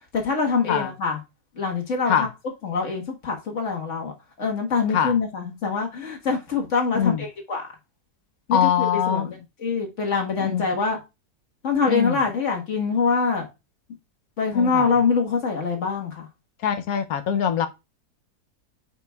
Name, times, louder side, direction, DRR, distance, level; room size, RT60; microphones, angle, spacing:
voice 1, 0.1-1.2 1.6-2.3 2.6-4.1 4.4-7.7 8.5-11.0 11.6-13.5 14.4-16.3, left 5 dB, 50° left, 1.8 m, -24 dB
voice 2, 8.5-9.3 10.4-10.7 11.9-12.1 14.5-14.9 16.6-17.7, left 8 dB, 70° left, 1.1 m, -23 dB
9.4 x 5.0 x 2.3 m
omnidirectional pair, 1.7 m